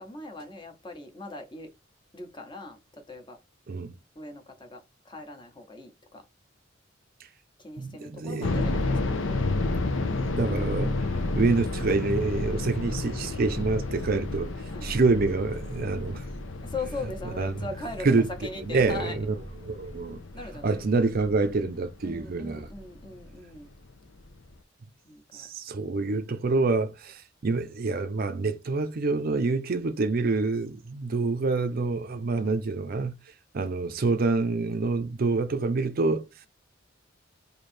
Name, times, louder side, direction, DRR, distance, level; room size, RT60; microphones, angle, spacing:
voice 1, 0.0-1.7 2.1-3.4 4.1-6.2 7.6-9.1 14.7-14.9 16.6-18.1 18.4-19.2 20.3-20.8 22.0-23.7 25.0-25.5 32.3-32.6 34.9-35.3, left 2 dB, 25° left, 0.9 m, -40 dB
voice 2, 7.8-8.7 10.4-10.9 11.3-14.5 14.8-16.2 17.4-17.6 18.0-18.3 18.6-19.3 19.6-20.2 20.6-22.7 25.3-33.2 33.5-36.3, right 3 dB, 50° right, 0.5 m, -26 dB
sound 1, 8.4-23.3 23.6-23.7 24.3-24.6, left 2 dB, 90° left, 0.7 m, -31 dB
3.2 x 2.7 x 4.2 m
head